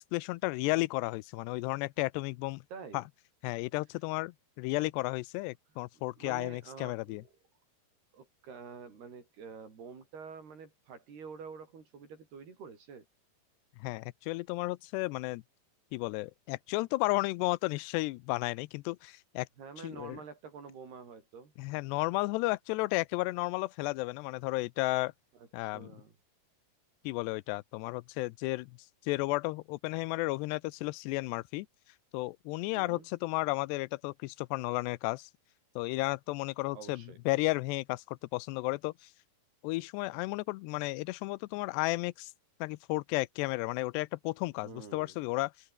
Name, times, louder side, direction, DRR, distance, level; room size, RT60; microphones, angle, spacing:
voice 1, 0.0-2.6 2.9-3.0 3.4-7.2 13.8-15.4 15.9-19.5 19.8-20.2 21.6-25.1 25.5-25.9 27.0-28.7 29.1-31.7 32.1-35.3 35.8-38.9 39.6-42.3 42.6-45.5, left 22 dB, 80° left, 2.7 m, -33 dB
voice 2, 2.7-3.1 3.9-4.0 6.2-7.3 8.1-13.1 19.6-21.5 25.3-26.1 32.7-33.1 36.7-37.2 44.6-45.2, right 5 dB, 65° right, 7.4 m, -48 dB
open air
omnidirectional pair, 5.1 m